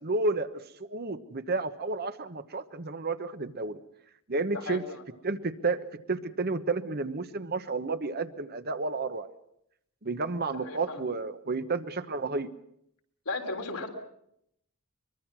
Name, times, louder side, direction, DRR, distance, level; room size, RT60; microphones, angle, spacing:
voice 1, 0.0-0.6 0.9-3.8 4.3-4.8 5.2-9.3 10.0-12.5, right 3 dB, 45° right, 10 dB, 1.1 m, -31 dB
voice 2, 4.5-5.0 10.5-11.0 13.3-13.9, left 3 dB, 80° left, 3 dB, 3.5 m, -36 dB
23.5 x 22.5 x 6.1 m, 0.74 s
head